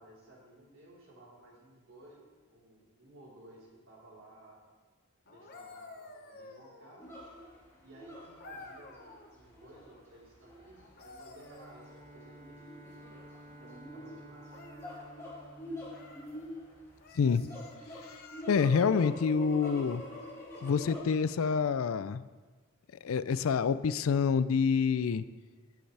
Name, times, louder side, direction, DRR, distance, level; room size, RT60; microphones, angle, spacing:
voice 1, 0.0-4.6 5.2-7.1 7.8-12.6 12.9-13.3 13.6-14.6, right 1 dB, 65° right, -6 dB, 4.0 m, -56 dB
sound 1, 5.3-7.3 8.4-9.4 10.8-12.4 14.5-15.1 15.9-16.3 17.0-18.8 20.7-20.9, left 3 dB, 45° left, 1.0 m, -52 dB
sound 2, 7.0-21.0, left 1 dB, 15° left, 3.1 m, -45 dB
Bowed string instrument, 11.3-16.9, right 1 dB, 80° right, 3.9 m, -53 dB
voice 2, 17.1-17.5 18.5-20.0 20.6-22.2 23.0-25.2, left 6 dB, 75° left, 15 dB, 0.4 m, -27 dB
18.0 x 7.9 x 3.4 m, 1.4 s
head